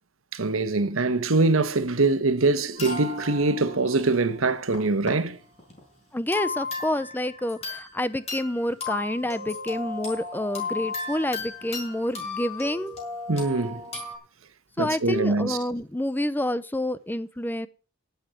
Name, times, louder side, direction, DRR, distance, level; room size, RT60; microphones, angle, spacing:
voice 1, 0.3-5.4 13.3-13.8 14.8-15.6, right 3 dB, 85° right, 1.2 m, -23 dB
sound 1, 2.8-5.1 5.6-5.8 6.3-8.0 8.3-14.2, left 3 dB, 30° left, 6.1 m, -35 dB
voice 2, 6.1-12.9 14.8-17.7, left 1 dB, 10° left, 0.6 m, -28 dB
12.0 x 8.0 x 7.5 m
head